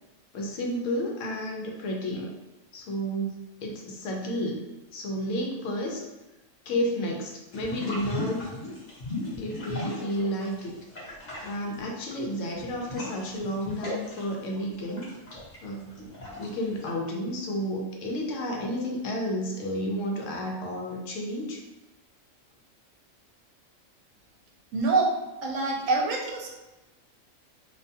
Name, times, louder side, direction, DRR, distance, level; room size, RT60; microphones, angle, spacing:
voice 1, 0.3-2.3 2.7-4.6 4.9-6.0 6.6-8.5 9.3-10.7 11.4-15.1 15.6-16.1 16.4-21.6, equal, 75° left, 0 dB, 0.9 m, -31 dB
sound 1, 7.5-10.6 10.9-16.9, left 2 dB, 40° left, 0.8 m, -37 dB
voice 2, 24.7-25.1 25.4-26.5, right 3 dB, 75° right, 0 dB, 0.9 m, -25 dB
2.6 x 2.2 x 2.7 m, 1.1 s
omnidirectional pair, 1.4 m